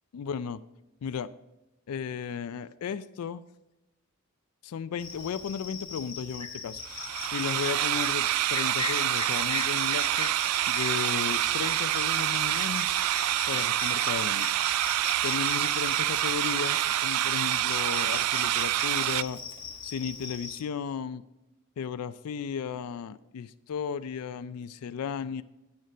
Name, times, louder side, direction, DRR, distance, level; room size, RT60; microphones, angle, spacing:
voice 1, 0.1-0.6 1.0-1.3 1.9-3.4 4.6-6.8 7.3-10.3 10.7-12.9 13.5-14.5 15.2-19.4 19.8-21.2 21.8-25.4, left 7 dB, 85° left, 13 dB, 0.4 m, -35 dB
Cricket, 5.0-20.6, left 5 dB, 20° left, 1.2 m, -40 dB
sound 1, 6.9-19.2, right 14 dB, 90° right, 0.3 m, -27 dB
10.5 x 6.5 x 5.0 m, 0.99 s
head